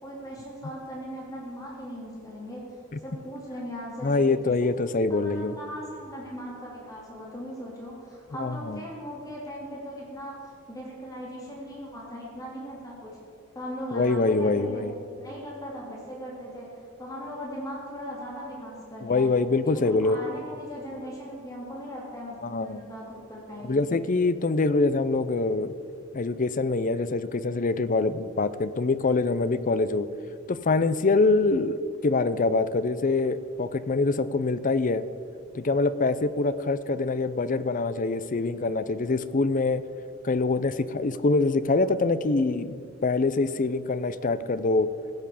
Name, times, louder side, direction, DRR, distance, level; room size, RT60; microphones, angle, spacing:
voice 1, 0.0-2.7 3.0-4.7 5.1-10.3 10.7-13.2 13.5-19.3 19.6-23.8, equal, 15° left, -4 dB, 2.8 m, -39 dB
voice 2, 4.0-5.5 8.4-8.8 13.9-14.9 19.0-20.2 22.4-22.8 23.6-25.7 26.1-30.1 30.5-35.0 35.5-39.8 40.2-44.9, left 3 dB, 40° left, 14 dB, 0.5 m, -24 dB
16.0 x 8.1 x 7.0 m, 2.5 s
head